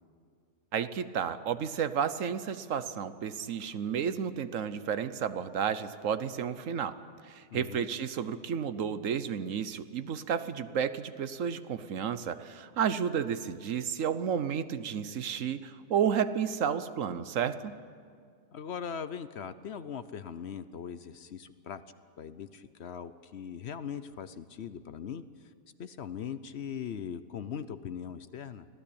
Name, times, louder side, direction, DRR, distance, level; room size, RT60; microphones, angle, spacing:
voice 1, 0.7-6.9 7.2-17.7, right 8 dB, 70° right, 12 dB, 1.2 m, -32 dB
voice 2, 7.5-7.9 18.5-21.8 22.2-25.2 25.8-28.7, left 7 dB, 60° left, 13 dB, 0.9 m, -40 dB
25.0 x 16.5 x 8.6 m, 2.1 s
omnidirectional pair, 1.4 m